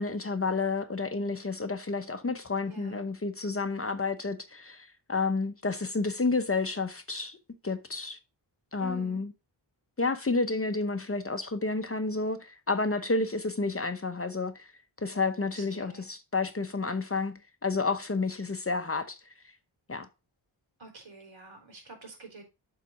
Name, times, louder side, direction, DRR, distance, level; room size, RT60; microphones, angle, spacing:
voice 1, 0.0-7.4 7.6-8.2 8.7-9.3 10.0-14.7 15.0-19.2 19.9-20.1, left 3 dB, 30° left, 0.8 m, -30 dB
voice 2, 2.6-3.1 8.8-9.2 15.5-16.0 20.8-22.4, right 3 dB, 75° right, 3.9 m, -47 dB
7.6 x 4.1 x 5.1 m
wide cardioid pair, 90°, 47 cm